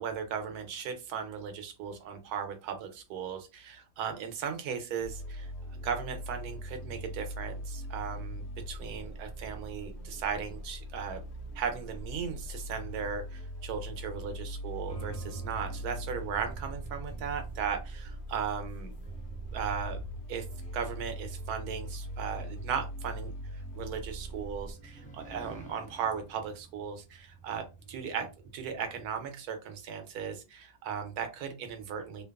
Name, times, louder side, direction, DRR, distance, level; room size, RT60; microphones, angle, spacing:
voice 1, 0.0-11.2 11.5-18.9 19.5-20.0 20.3-20.4 20.7-23.3 23.8-28.3 28.5-32.2, right 7 dB, 85° right, 6 dB, 1.1 m, -37 dB
sound 1, 5.0-24.7, equal, 80° left, 1.1 m, -41 dB
sound 2, 14.9-29.1, right 4 dB, 10° left, 0.5 m, -49 dB
2.9 x 2.2 x 2.3 m, 0.28 s
omnidirectional pair, 1.6 m